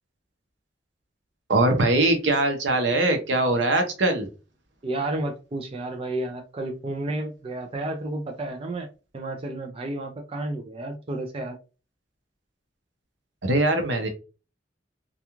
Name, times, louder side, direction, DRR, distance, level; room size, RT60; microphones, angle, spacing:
voice 1, 1.5-4.3 13.4-14.1, right 2 dB, 75° right, 5 dB, 0.7 m, -21 dB
voice 2, 4.8-8.9 9.1-11.6, right 2 dB, 30° right, 2 dB, 0.4 m, -31 dB
2.4 x 2.3 x 2.9 m, 0.32 s
head